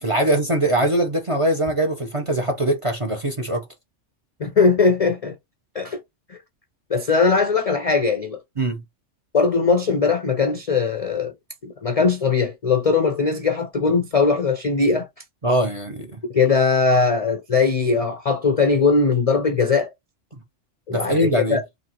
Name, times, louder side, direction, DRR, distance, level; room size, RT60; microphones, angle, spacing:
voice 1, 0.0-3.6 8.6-8.8 15.4-16.2 20.9-21.6, right 1 dB, 35° right, 0.5 m, -22 dB
voice 2, 4.4-5.4 5.7-6.0 6.3-6.4 6.9-8.4 9.3-11.3 11.6-15.1 16.3-19.9 20.9-21.6, left 4 dB, 50° left, 0.4 m, -20 dB
4.0 x 2.7 x 2.9 m
omnidirectional pair, 1.3 m